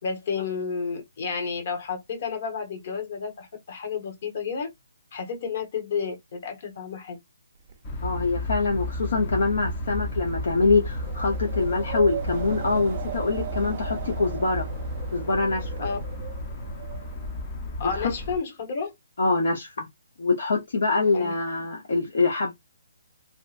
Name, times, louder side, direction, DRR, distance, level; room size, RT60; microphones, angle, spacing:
voice 1, 0.0-4.7 5.1-7.2 15.8-16.0 17.8-18.9 21.1-21.3, left 5 dB, 45° left, 1.2 m, -31 dB
Wind, 7.7-17.8, right 7 dB, 40° right, 0.4 m, -38 dB
sound 1, 7.8-18.4, left 2 dB, 25° left, 0.7 m, -33 dB
voice 2, 8.0-14.6 15.1-15.7 17.8-18.1 19.2-19.9 20.2-22.5, left 3 dB, 65° left, 0.8 m, -24 dB
2.8 x 2.3 x 2.5 m
hypercardioid pair, 155°, 0 cm